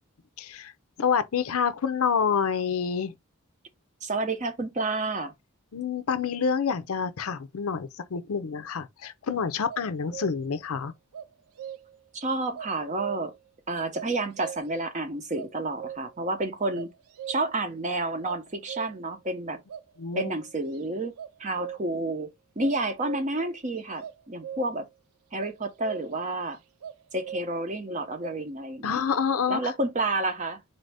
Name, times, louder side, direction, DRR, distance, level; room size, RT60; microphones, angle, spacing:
voice 1, 0.4-0.7 1.0-3.1 5.7-10.9 20.0-20.3 28.8-29.7, left 6 dB, 70° left, 0.5 m, -28 dB
voice 2, 4.0-5.3 12.1-13.3 13.7-16.9 17.3-19.6 20.1-21.1 21.4-22.3 22.6-24.9 25.3-26.6 27.1-29.0 29.5-30.6, right 2 dB, 35° right, 0.7 m, -30 dB
sound 1, 9.7-10.6 11.1-12.1 12.5-13.5 13.9-14.9 15.3-16.3 16.7-17.7 18.2-19.2 19.7-20.8 21.2-22.1 22.6-23.5 24.0-24.9 25.4-26.3 26.8-27.7 28.2-28.4, right 9 dB, 80° right, 0.4 m, -41 dB
4.1 x 2.6 x 3.3 m
head